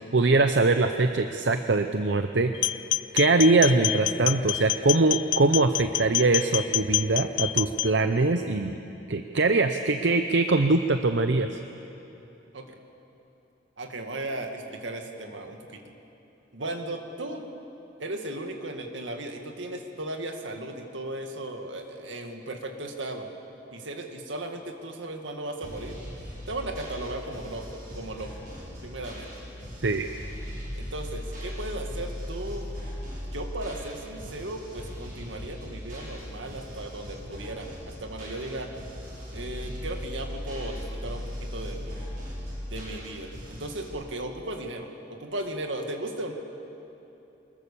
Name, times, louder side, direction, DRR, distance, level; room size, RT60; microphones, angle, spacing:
voice 1, 0.1-2.5 3.1-8.8 9.1-11.5 29.8-30.1, right 3 dB, 70° right, 7 dB, 0.7 m, -22 dB
sound 1, 2.5-7.9, left 14 dB, 80° left, 0.4 m, -27 dB
voice 2, 13.8-15.8 16.5-17.5 18.0-23.3 23.7-26.0 26.5-28.4 28.8-29.3 30.8-32.7 33.2-38.7 39.3-42.0 42.7-46.3, right 1 dB, 85° right, 4 dB, 2.1 m, -36 dB
sound 2, 25.6-43.9, equal, 50° right, 6.2 m, -38 dB
24.5 x 21.0 x 7.0 m, 3.0 s
head